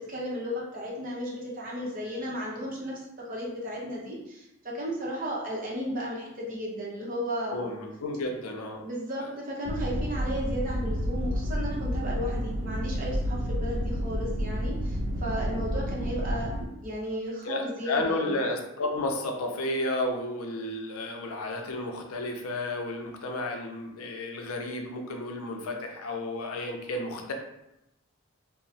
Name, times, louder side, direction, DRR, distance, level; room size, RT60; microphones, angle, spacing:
voice 1, 0.1-7.7 8.8-18.4, equal, 40° right, -4 dB, 0.7 m, -34 dB
voice 2, 7.5-8.8 9.2-9.3 17.4-27.3, left 2 dB, 85° left, 2 dB, 0.5 m, -32 dB
sound 1, 9.6-16.7, equal, 70° right, 0.4 m, -30 dB
2.9 x 2.0 x 2.6 m, 0.87 s
head